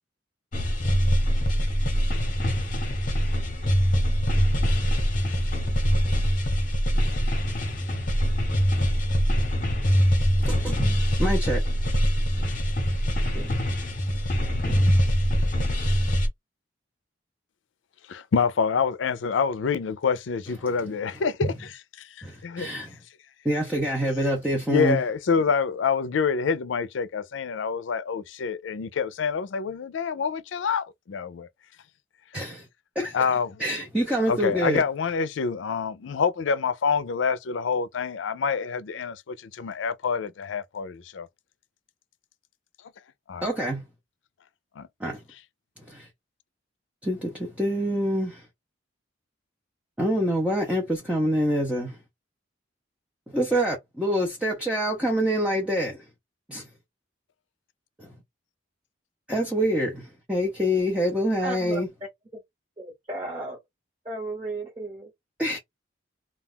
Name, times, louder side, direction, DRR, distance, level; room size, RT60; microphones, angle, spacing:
sound 1, 0.5-16.3, equal, 45° left, 0.8 m, -23 dB
voice 1, 10.4-11.6 12.4-12.5 13.3-13.6 14.6-15.0 21.4-21.5 22.2-22.9 23.4-25.0 32.3-32.7 33.0-33.2 33.6-34.8 43.4-43.8 45.0-45.2 45.9-46.1 47.0-48.5 50.0-52.0 53.3-56.0 56.5-56.7 58.0-58.1 59.3-61.9 65.4-65.6, equal, 5° right, 0.6 m, -26 dB
voice 2, 18.1-21.7 22.0-22.7 24.7-31.5 33.1-33.6 34.3-41.3 43.3-43.5 44.8-44.9, left 5 dB, 80° left, 0.4 m, -27 dB
voice 3, 61.4-61.8 62.8-63.6 64.0-65.1, right 2 dB, 30° right, 1.1 m, -34 dB
2.3 x 2.3 x 3.4 m
head